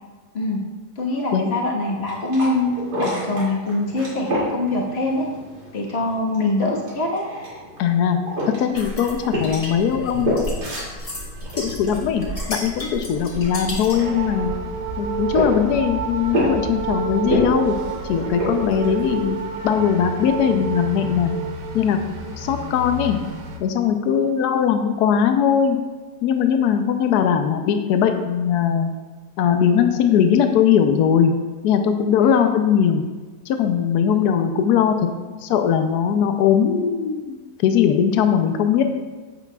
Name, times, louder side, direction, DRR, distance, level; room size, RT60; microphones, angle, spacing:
voice 1, 1.0-2.7 3.0-5.2 5.7-7.2 13.1-13.2 24.2-24.3 32.2-32.4 34.1-34.2, left 2 dB, 40° left, -2 dB, 1.6 m, -24 dB
sound 1, 1.8-19.7, equal, 80° right, 3.0 m, -30 dB
voice 2, 7.8-8.2 8.6-10.6 11.6-14.5 15.0-17.8 18.0-21.3 21.7-22.0 22.4-23.2 23.6-25.8 26.2-28.9 29.4-31.3 31.6-33.0 33.5-35.0 35.4-38.8, left 8 dB, 80° left, 6 dB, 1.2 m, -20 dB
sound 2, 8.8-14.1, equal, 20° left, 1.4 m, -33 dB
sound 3, 13.9-23.6, right 5 dB, 60° right, 1.2 m, -29 dB
10.5 x 8.2 x 2.3 m, 1.3 s
omnidirectional pair, 1.7 m